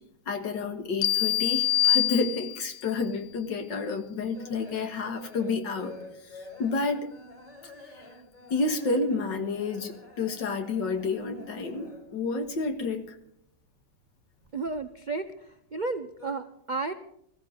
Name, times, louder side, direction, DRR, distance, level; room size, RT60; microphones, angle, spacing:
voice 1, 0.3-5.9 6.2-7.1 7.8-8.1 8.5-13.2, left 4 dB, 90° left, 7 dB, 2.3 m, -30 dB
sound 1, 1.0-2.8, left 12 dB, 60° left, 0.8 m, -25 dB
sound 2, 4.3-12.3 12.5-13.7 14.0-15.4 15.7-16.3, left 3 dB, 25° left, 4.4 m, -49 dB
voice 2, 14.5-16.9, right 3 dB, 55° right, 6 dB, 0.5 m, -33 dB
20.5 x 15.0 x 3.9 m, 0.74 s
omnidirectional pair, 1.9 m